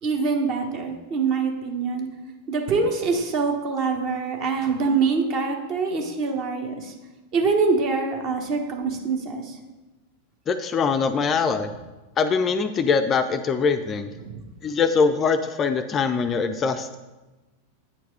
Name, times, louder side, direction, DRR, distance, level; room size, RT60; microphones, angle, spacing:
voice 1, 0.0-2.1 2.5-6.9 7.3-9.5 14.2-14.4, right 4 dB, 40° right, 3 dB, 1.1 m, -24 dB
voice 2, 10.5-11.7 12.2-14.1 14.6-17.0, left 5 dB, 25° left, 9 dB, 0.4 m, -22 dB
8.6 x 4.7 x 4.7 m, 1.1 s
figure-of-eight pair, 90°, 0 cm